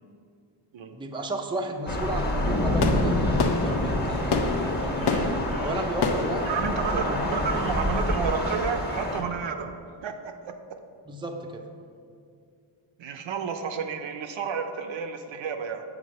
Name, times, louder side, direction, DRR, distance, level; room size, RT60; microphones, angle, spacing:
voice 1, 0.9-5.3 5.6-7.4 11.1-11.7, right 1 dB, 10° right, 4 dB, 0.5 m, -33 dB
Thunder / Rain, 1.9-9.2, left 1 dB, 20° left, 1.1 m, -27 dB
sound 1, 2.8-7.7, left 4 dB, 55° left, 0.7 m, -29 dB
voice 2, 5.0-5.9 6.4-9.7 10.0-10.3 13.0-15.8, right 6 dB, 75° right, 6 dB, 0.7 m, -31 dB
6.1 x 4.9 x 6.2 m, 2.3 s
wide cardioid pair, 110°, 46 cm